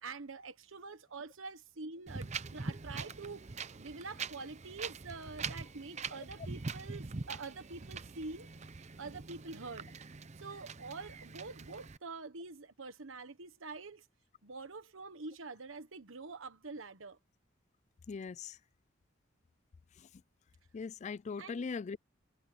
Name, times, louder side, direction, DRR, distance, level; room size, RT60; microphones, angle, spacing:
voice 1, 0.0-3.4 3.8-8.5 9.0-9.9 10.4-14.1 14.4-17.2 21.4-21.7, right 3 dB, 85° right, 1.2 m, -46 dB
Wind, 2.1-12.0, right 4 dB, 35° right, 0.7 m, -43 dB
voice 2, 18.1-18.6 20.7-22.0, left 5 dB, 35° left, 0.3 m, -40 dB
head